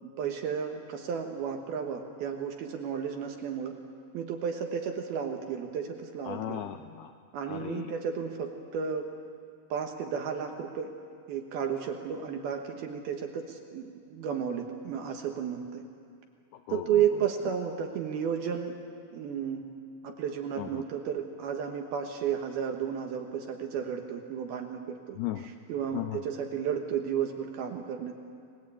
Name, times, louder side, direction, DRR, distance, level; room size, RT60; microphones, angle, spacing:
voice 1, 0.0-3.7 4.1-6.6 7.3-9.1 9.7-10.9 11.3-15.8 16.7-18.8 19.1-19.6 20.0-28.1, right 8 dB, 65° right, 3 dB, 2.7 m, -33 dB
voice 2, 6.3-7.1 7.5-7.9 16.7-17.0 20.6-20.8 25.2-25.5 25.9-26.2, left 13 dB, 80° left, 7 dB, 2.3 m, -36 dB
29.5 x 20.5 x 8.5 m, 2.3 s
omnidirectional pair, 5.4 m